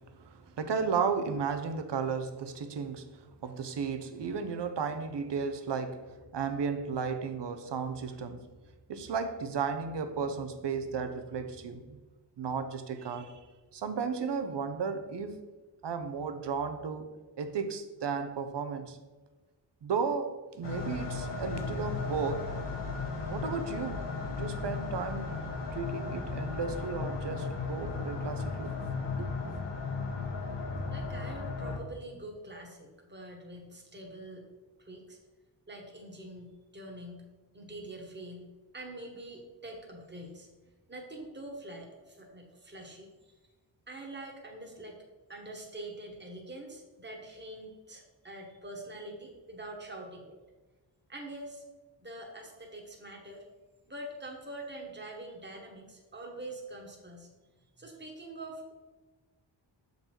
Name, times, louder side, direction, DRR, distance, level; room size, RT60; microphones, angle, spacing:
voice 1, 0.1-8.5 8.9-12.0 12.4-13.4 13.7-15.4 15.8-17.1 17.4-19.0 19.8-22.5 23.3-25.3 25.7-28.7 29.2-29.6, right 5 dB, 70° right, 0.7 m, -34 dB
sound 1, 20.6-31.8, left 4 dB, 70° left, 1.2 m, -35 dB
voice 2, 30.9-34.5 34.8-35.2 35.7-37.2 37.5-38.5 38.7-40.5 40.9-43.3 43.9-45.0 45.3-50.4 51.1-51.6 52.0-53.4 53.9-57.3 57.8-58.7, right 1 dB, 25° right, 1.3 m, -45 dB
6.7 x 4.0 x 4.5 m
wide cardioid pair, 65°, 44 cm